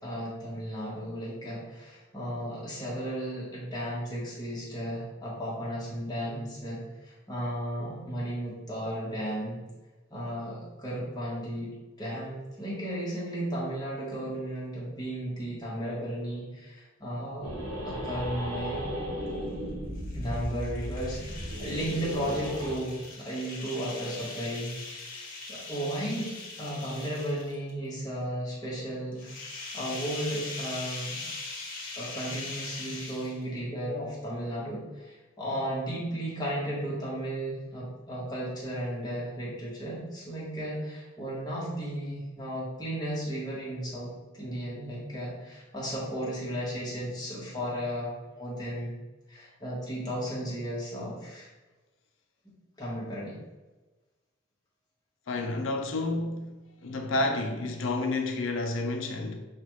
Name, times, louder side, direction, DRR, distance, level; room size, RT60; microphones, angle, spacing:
voice 1, 0.0-9.6 10.1-11.7 12.0-17.5 17.8-18.9 20.1-24.8 25.0-26.3 26.6-31.2 32.0-48.9 49.3-51.5 52.8-53.4, right 1 dB, 20° left, 1.3 m, -34 dB
sound 1, 17.4-22.8, equal, 85° right, 1.0 m, -35 dB
sound 2, 19.9-27.7 29.1-33.6, left 3 dB, 45° left, 1.0 m, -41 dB
voice 2, 55.3-56.6 56.8-59.4, left 2 dB, 70° left, 0.6 m, -30 dB
5.7 x 2.3 x 3.1 m
head